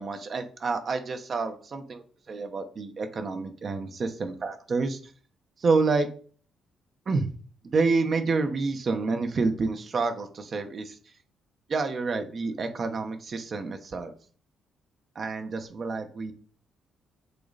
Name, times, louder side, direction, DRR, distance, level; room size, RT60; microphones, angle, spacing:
voice 1, 0.0-5.1 5.6-6.1 7.1-7.3 7.6-11.0 11.7-14.1 15.1-16.3, right 4 dB, 45° right, 6 dB, 1.1 m, -28 dB
6.8 x 3.8 x 4.1 m, 0.43 s
cardioid pair, 90°, 0 cm